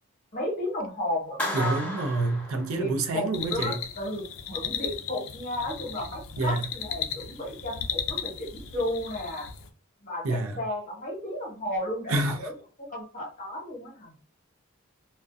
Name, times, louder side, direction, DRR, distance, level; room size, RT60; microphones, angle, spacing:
voice 1, 0.3-1.8 2.7-9.5 10.0-12.5 12.9-14.1, left 1 dB, 40° left, 1.0 m, -33 dB
Clapping, 1.4-3.3, left 1 dB, 5° left, 0.6 m, -35 dB
voice 2, 1.5-3.8 6.4-6.7 10.2-10.6 12.1-12.5, right 2 dB, 75° right, 0.5 m, -28 dB
sound 1, 3.3-9.7, left 8 dB, 65° left, 0.4 m, -36 dB
2.3 x 2.1 x 2.5 m
head